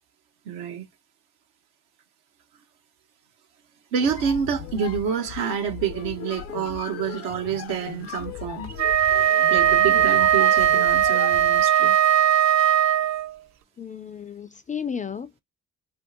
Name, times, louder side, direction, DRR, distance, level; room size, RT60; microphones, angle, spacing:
voice 1, 0.5-0.9 3.9-8.7 9.5-11.9, right 7 dB, 80° right, 0.8 m, -28 dB
sound 1, 3.9-11.7, left 9 dB, 80° left, 0.6 m, -37 dB
Wind instrument woodwind instrument, 8.7-13.3, right 10 dB, 45° right, 0.5 m, -19 dB
voice 2, 13.8-15.4, left 7 dB, 20° left, 0.3 m, -33 dB
2.7 x 2.1 x 3.7 m
hypercardioid pair, 45°, 40 cm